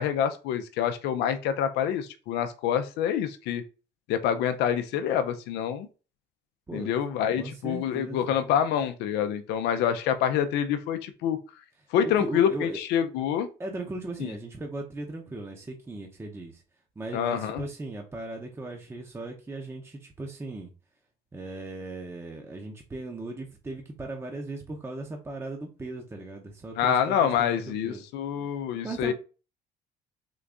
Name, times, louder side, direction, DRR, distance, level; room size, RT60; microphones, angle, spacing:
voice 1, 0.0-3.6 4.1-5.9 6.7-11.4 11.9-13.5 14.2-14.3 17.1-17.6 26.8-29.1, left 9 dB, 85° left, 0.5 m, -26 dB
voice 2, 7.4-8.3 12.0-12.8 13.6-16.6 17.0-20.7 21.3-28.0 28.8-29.1, right 2 dB, 15° right, 0.7 m, -38 dB
3.8 x 2.6 x 3.4 m
cardioid pair, 110°, 17 cm